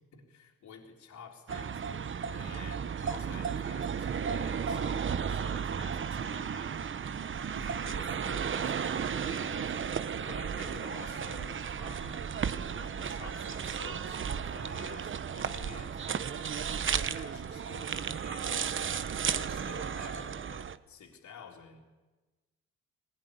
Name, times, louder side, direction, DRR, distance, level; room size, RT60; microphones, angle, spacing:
voice 1, 0.1-6.9 7.4-9.7 10.2-12.4 12.8-18.9 19.3-21.8, left 6 dB, 70° left, 1 dB, 3.7 m, -51 dB
sound 1, 1.5-20.8, right 7 dB, 40° right, 1.0 m, -34 dB
20.5 x 19.0 x 9.6 m, 1.2 s
cardioid pair, 90°, 30 cm